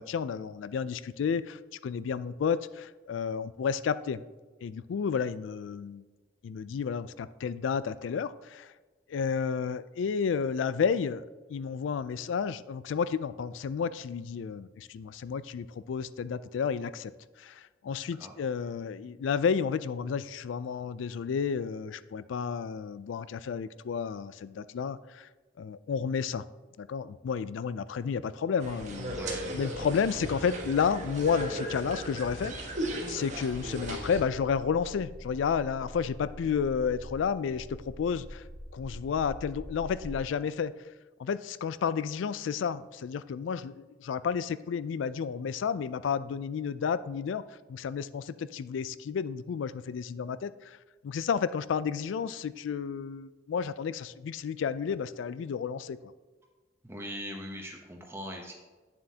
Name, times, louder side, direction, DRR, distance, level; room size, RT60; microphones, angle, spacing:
voice 1, 0.0-4.2 4.6-6.0 6.4-8.7 9.1-11.2 11.5-17.1 17.4-25.3 25.6-26.4 26.8-29.3 29.5-32.8 33.1-38.4 38.7-40.7 41.2-47.4 47.7-50.8 51.0-56.1, left 6 dB, 80° left, 16 dB, 0.3 m, -31 dB
sound 1, 28.6-34.2, right 1 dB, 40° right, 1.2 m, -36 dB
voice 2, 29.1-29.6 56.8-58.5, equal, 15° right, 1 dB, 0.8 m, -41 dB
sound 2, 33.1-40.2, equal, 65° right, 1.3 m, -45 dB
8.9 x 7.2 x 2.8 m, 1.3 s
head